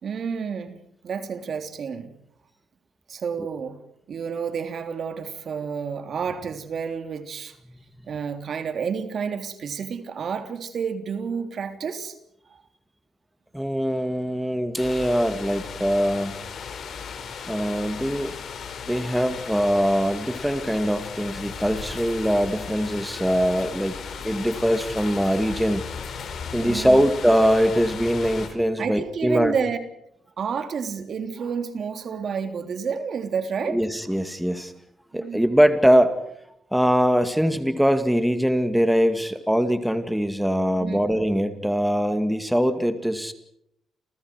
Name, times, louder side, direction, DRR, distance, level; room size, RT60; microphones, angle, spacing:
voice 1, 0.0-2.1 3.1-3.8 4.1-7.6 8.1-12.2 26.6-27.1 28.8-29.8 30.4-33.8 35.1-35.5 40.8-41.0, right 6 dB, 55° right, 8 dB, 3.4 m, -30 dB
voice 2, 13.5-16.3 17.5-18.3 18.9-24.0 24.2-25.8 26.5-29.5 33.7-34.7 35.1-36.1 36.7-43.3, equal, ahead, 9 dB, 2.2 m, -22 dB
sound 1, 14.8-28.5, left 6 dB, 60° left, 5.8 m, -36 dB
29.0 x 29.0 x 4.8 m, 0.75 s
cardioid pair, 90°, 0 cm